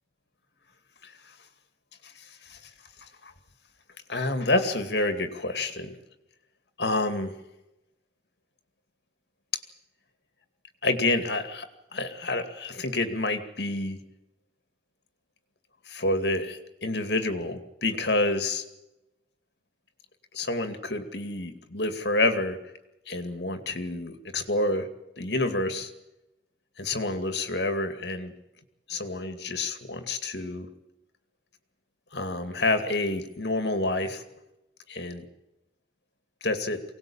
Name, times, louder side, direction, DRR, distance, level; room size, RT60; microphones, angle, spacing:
voice 1, 2.0-2.6 3.0-3.3 4.1-6.0 6.8-7.4 10.8-14.0 15.9-18.6 20.3-22.6 23.1-24.9 25.2-25.9 26.8-28.3 28.9-30.7 32.1-34.2 34.9-35.2 36.4-36.8, left 2 dB, 65° left, 8 dB, 2.4 m, -28 dB
23.5 x 18.5 x 8.8 m, 0.95 s
head